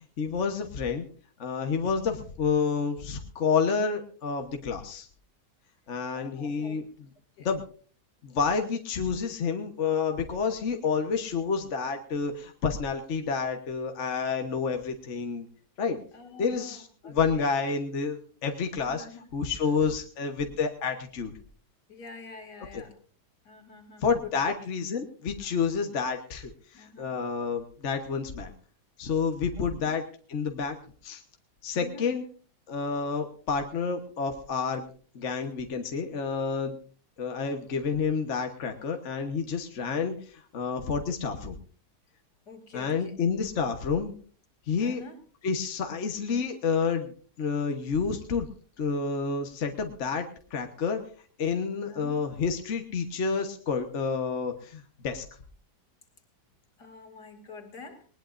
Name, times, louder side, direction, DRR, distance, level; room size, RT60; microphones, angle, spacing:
voice 1, 0.2-1.0 1.4-5.1 5.9-7.1 7.4-7.6 8.2-15.5 15.8-16.0 16.4-19.0 19.3-21.3 22.7-22.8 24.0-28.5 29.0-30.0 30.3-30.8 31.0-31.2 31.6-32.2 32.7-34.9 35.1-36.8 37.2-41.6 42.7-44.1 44.7-45.0 45.4-47.1 47.4-48.5 48.8-50.3 50.5-51.0 51.4-55.2, left 5 dB, 45° left, 4 dB, 1.4 m, -29 dB
voice 2, 6.1-6.8 7.4-7.5 16.1-17.4 18.8-19.3 19.6-19.9 21.9-23.0 23.4-24.4 26.7-27.3 29.6-29.9 31.7-32.1 42.5-43.2 44.8-45.2 51.9-52.2 56.8-58.1, left 4 dB, 70° left, 5 dB, 2.9 m, -47 dB
20.0 x 19.5 x 2.6 m, 0.41 s
omnidirectional pair, 1.8 m